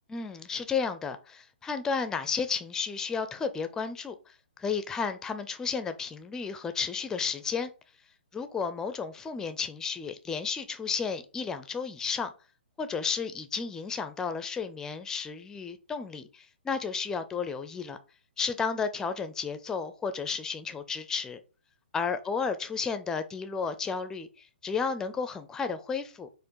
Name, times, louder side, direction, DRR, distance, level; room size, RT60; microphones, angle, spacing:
voice 1, 0.1-4.2 4.6-7.7 8.3-12.3 12.8-18.0 18.4-21.4 21.9-26.3, left 5 dB, 10° left, 0.4 m, -32 dB
4.4 x 2.4 x 4.5 m
figure-of-eight pair, 125°, 6 cm